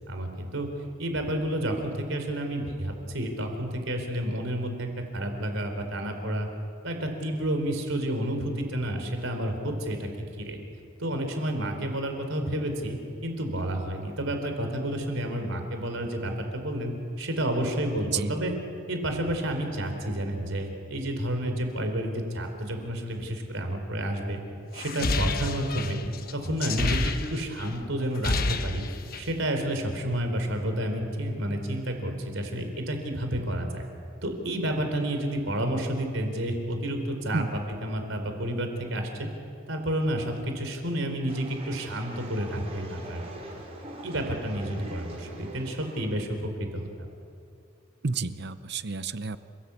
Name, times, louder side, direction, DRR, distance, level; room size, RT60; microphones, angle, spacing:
voice 1, 0.1-0.7 1.0-6.5 6.8-10.1 10.4-10.6 11.0-18.5 18.9-24.4 24.7-26.0 26.3-28.9 29.2-33.9 34.2-39.3 39.7-43.2 43.5-43.6 44.0-47.1, right 1 dB, 70° right, 5 dB, 4.1 m, -30 dB
sound 1, 24.8-27.7 28.0-29.4, left 2 dB, 45° left, 1.2 m, -29 dB
sound 2, 41.3-46.2, right 1 dB, 30° right, 5.0 m, -43 dB
voice 2, 48.0-49.4, right 4 dB, 55° right, 12 dB, 0.8 m, -30 dB
29.5 x 17.0 x 8.4 m, 2.5 s
head